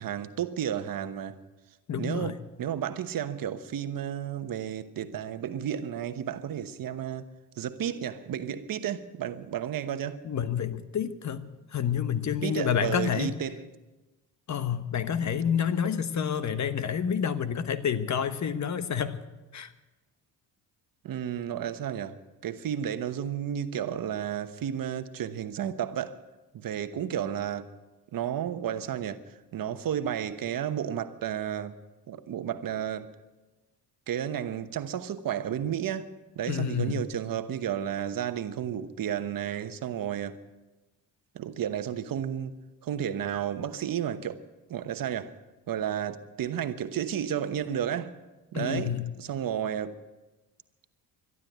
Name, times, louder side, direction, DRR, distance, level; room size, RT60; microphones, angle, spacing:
voice 1, 0.0-1.4 2.0-7.3 7.6-10.2 12.4-13.7 15.8-15.9 21.0-26.2 26.5-27.7 28.1-31.8 32.1-33.1 34.1-40.4 41.3-42.6 42.8-45.4 45.7-48.1 48.5-50.0, right 9 dB, 60° right, 1.1 m, -32 dB
voice 2, 1.9-2.3 10.2-13.3 14.5-19.2 19.5-19.7 36.5-37.0 48.5-49.1, left 8 dB, 45° left, 1.2 m, -29 dB
12.5 x 12.0 x 9.2 m
supercardioid pair, 75°, 39 cm